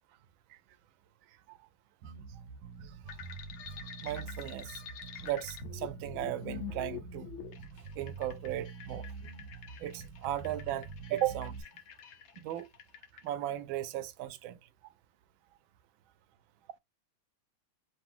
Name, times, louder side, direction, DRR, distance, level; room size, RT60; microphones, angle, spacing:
Bass guitar, 2.0-11.6, right 5 dB, 65° right, 1.1 m, -46 dB
sound 1, 3.1-13.3, left 10 dB, 85° left, 1.5 m, -47 dB
voice 1, 4.0-4.8 5.2-7.3 8.0-9.1 9.8-11.6 12.4-12.7 13.2-14.6, right 13 dB, 80° right, 1.3 m, -36 dB
3.8 x 2.6 x 3.7 m
omnidirectional pair, 2.2 m